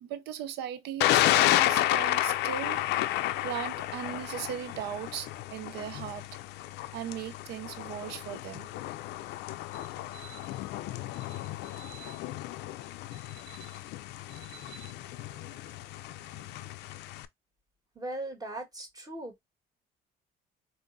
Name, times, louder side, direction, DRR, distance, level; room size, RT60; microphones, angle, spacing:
voice 1, 0.0-2.8 3.4-6.2 6.9-8.7 9.7-10.5 11.1-12.2 13.1-13.8 14.3-15.9 16.2-16.7, right 10 dB, 85° right, 0.5 m, -40 dB
Thunder, 1.0-17.3, left 15 dB, 85° left, 0.4 m, -31 dB
voice 2, 17.9-19.4, right 1 dB, 20° right, 1.5 m, -38 dB
4.1 x 2.7 x 2.5 m
cardioid pair, 110°, 17 cm